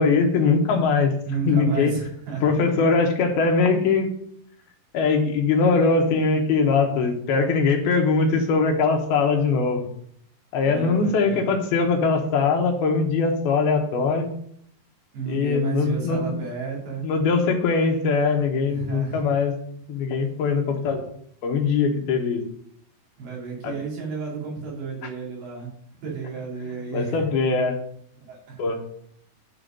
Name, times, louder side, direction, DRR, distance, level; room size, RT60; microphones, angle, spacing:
voice 1, 0.0-1.1 1.5-1.9 2.4-4.1 4.9-9.9 10.5-14.3 15.3-16.4 17.0-19.5 19.9-21.0 21.4-22.4 23.6-23.7 26.9-27.8 28.6-28.8, left 4 dB, 80° left, 4 dB, 3.1 m, -21 dB
voice 2, 1.2-2.4 10.6-11.5 15.1-17.0 18.7-19.3 23.2-25.7 26.0-27.2 28.2-28.6, right 6 dB, 80° right, -4 dB, 5.0 m, -31 dB
10.5 x 5.1 x 5.2 m, 0.66 s
omnidirectional pair, 4.4 m